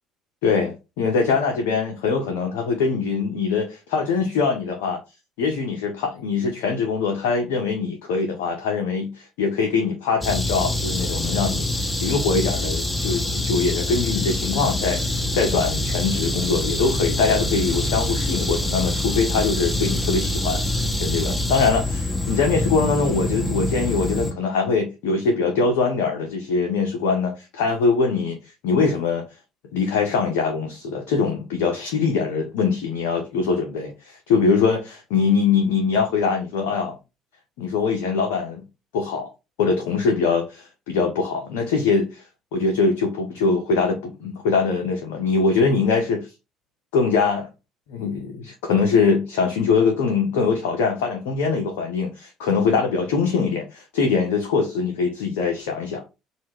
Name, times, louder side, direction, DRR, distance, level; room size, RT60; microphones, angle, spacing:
voice 1, 0.4-5.0 5.4-11.7 12.0-28.4 28.6-29.3 29.7-37.0 37.6-38.6 38.9-39.3 39.6-42.2 42.5-46.3 46.9-47.5 47.9-56.0, left 4 dB, 65° left, 0.5 m, -22 dB
sound 1, 10.2-24.3, left 1 dB, 15° left, 0.6 m, -25 dB
2.2 x 2.1 x 3.3 m
figure-of-eight pair, 50°, 0 cm